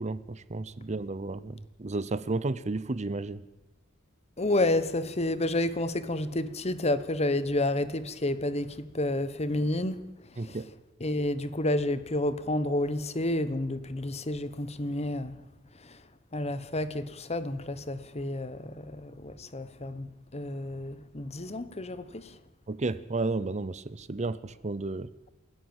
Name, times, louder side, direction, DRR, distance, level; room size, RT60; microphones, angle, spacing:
voice 1, 0.0-3.4 10.4-10.7 22.7-25.1, right 3 dB, 35° right, 0.7 m, -32 dB
voice 2, 4.4-10.0 10.3-10.6 11.0-15.4 15.7-16.0 16.3-22.4, left 1 dB, 30° left, 1.1 m, -30 dB
28.5 x 11.0 x 9.0 m
head